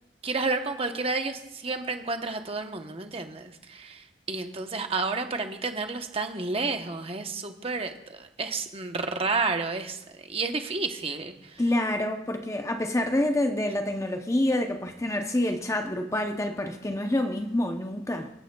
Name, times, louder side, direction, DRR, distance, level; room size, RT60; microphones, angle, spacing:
voice 1, 0.2-11.6, right 3 dB, 30° right, 0.9 m, -31 dB
voice 2, 11.6-18.3, left 1 dB, 15° left, 0.7 m, -27 dB
26.5 x 9.0 x 2.3 m
head